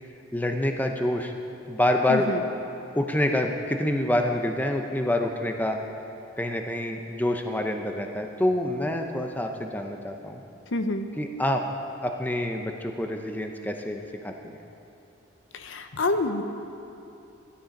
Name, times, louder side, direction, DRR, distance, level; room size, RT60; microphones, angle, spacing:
voice 1, 0.3-1.3 1.7-2.3 3.0-5.8 6.4-10.4 11.2-11.6 12.0-14.6, left 1 dB, 10° left, 4 dB, 0.6 m, -27 dB
voice 2, 2.1-2.4 10.7-11.1 15.5-16.4, left 2 dB, 65° left, 8 dB, 0.7 m, -27 dB
13.0 x 11.5 x 5.2 m, 2.9 s
head